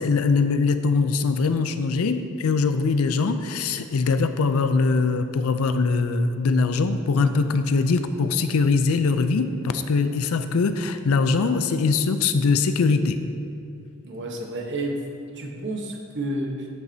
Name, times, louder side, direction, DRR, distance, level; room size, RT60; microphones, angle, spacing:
voice 1, 0.0-13.2, left 4 dB, 75° left, 10 dB, 0.4 m, -22 dB
voice 2, 14.0-14.9 15.3-16.7, right 1 dB, 55° right, 0 dB, 1.1 m, -30 dB
9.6 x 7.3 x 2.7 m, 2.6 s
head